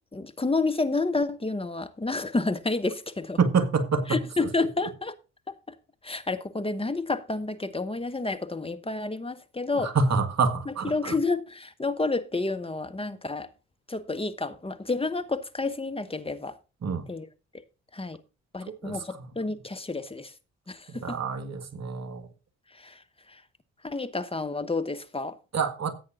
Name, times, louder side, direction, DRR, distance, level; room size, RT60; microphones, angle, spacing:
voice 1, 0.1-3.4 4.1-5.1 5.7-5.8 6.0-9.9 10.7-13.5 13.9-16.5 17.1-17.3 17.9-18.2 18.5-20.3 20.7-21.2 22.7-23.0 23.3-23.4 23.8-25.4, left 3 dB, 15° left, 1.4 m, -30 dB
voice 2, 3.4-4.2 9.8-11.2 16.8-17.1 18.8-19.3 20.9-22.3 25.5-25.9, right 4 dB, 50° right, 1.8 m, -27 dB
15.5 x 8.4 x 2.6 m
hypercardioid pair, 45°, 34 cm